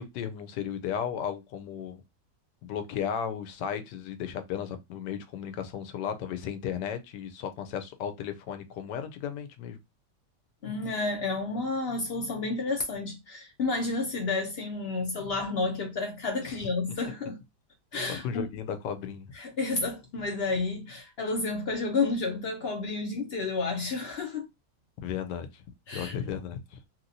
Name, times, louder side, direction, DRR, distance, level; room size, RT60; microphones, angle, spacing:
voice 1, 0.0-2.0 2.6-9.8 16.4-16.7 18.1-19.3 25.0-25.6 25.9-26.8, left 8 dB, 85° left, 1.2 m, -35 dB
voice 2, 10.6-17.4 17.9-18.5 19.3-24.5 25.9-26.1, left 3 dB, 70° left, 0.6 m, -31 dB
2.9 x 2.8 x 2.6 m
omnidirectional pair, 1.8 m